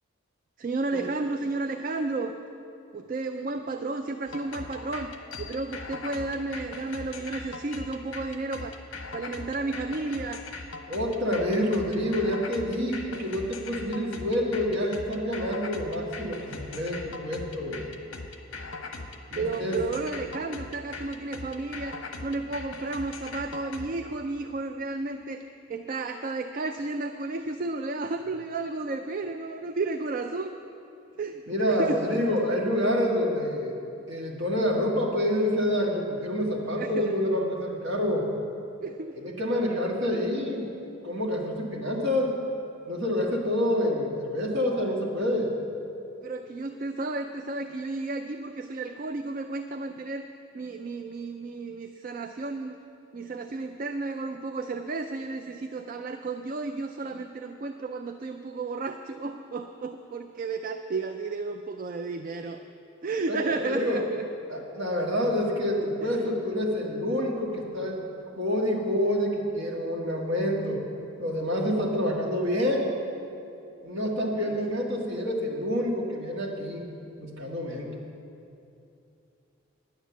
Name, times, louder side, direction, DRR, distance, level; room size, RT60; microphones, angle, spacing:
voice 1, 0.6-2.3 2.9-8.8 9.1-10.4 19.3-25.4 25.7-30.5 31.2-31.4 31.7-32.2 36.8-37.1 38.8-39.2 46.2-50.3 50.5-52.8 53.1-62.6 63.0-64.3 66.0-66.3 74.3-74.6, right 3 dB, 40° right, 6 dB, 0.4 m, -32 dB
sound 1, 4.3-23.9, left 3 dB, 70° left, 0.9 m, -40 dB
voice 2, 10.9-17.9 19.3-19.8 31.5-33.7 34.1-38.3 39.2-40.7 41.0-42.3 42.9-45.5 63.3-63.4 63.7-64.0 64.5-68.0 68.4-70.8 71.2-72.9 73.8-76.9 77.2-77.9, left 1 dB, 60° right, -1 dB, 1.7 m, -27 dB
10.0 x 9.3 x 7.0 m, 2.7 s
head